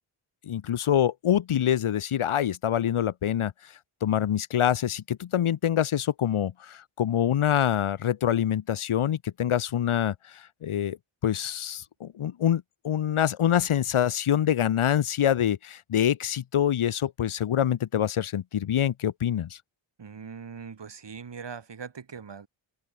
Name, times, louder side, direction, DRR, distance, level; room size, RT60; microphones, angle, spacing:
voice 1, 0.4-3.5 4.0-11.0 11.2-19.6, left 10 dB, 75° left, 1.6 m, -25 dB
voice 2, 20.0-22.5, right 6 dB, 55° right, 6.9 m, -41 dB
open air
cardioid pair, 95°, 50 cm